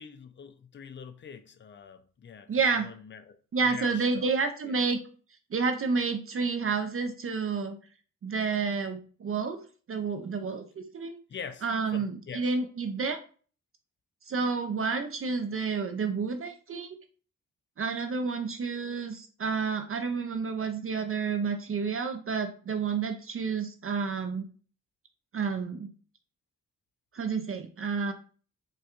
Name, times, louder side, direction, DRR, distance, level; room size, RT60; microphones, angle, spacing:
voice 1, 0.0-3.4 3.6-4.4 4.7-4.8 11.3-11.6 11.9-12.5, left 7 dB, 35° left, 0.4 m, -44 dB
voice 2, 2.5-2.9 3.5-5.0 5.5-7.8 8.2-9.6 9.9-11.1 11.6-13.2 14.3-16.9 17.8-24.5 25.3-25.9 27.1-28.1, right 5 dB, 45° right, 0.4 m, -30 dB
4.2 x 2.3 x 2.4 m
cardioid pair, 80°, 32 cm